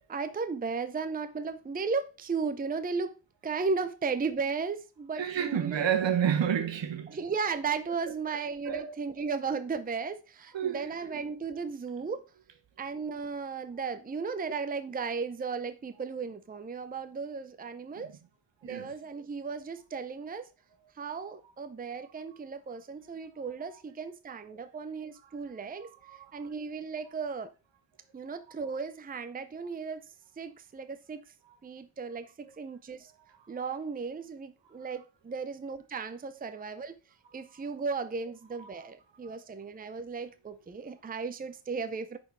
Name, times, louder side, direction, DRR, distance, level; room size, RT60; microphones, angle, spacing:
voice 1, 0.1-3.1 3.4-5.9 7.1-12.2 12.8-18.2 18.6-20.5 21.0-25.9 26.3-27.5 28.1-30.1 30.4-31.2 31.6-33.1 33.5-37.0 37.3-42.2, right 5 dB, 20° right, 0.6 m, -35 dB
voice 2, 5.2-7.2 8.1-8.4 8.7-9.0 10.5-11.2 18.0-18.2 18.6-18.9 24.5-24.6 26.0-26.4 31.4-31.6 32.4-32.5 38.6-38.9 39.2-39.4, right 8 dB, 70° right, 1.3 m, -31 dB
9.7 x 4.4 x 4.7 m
wide cardioid pair, 135°, 45 cm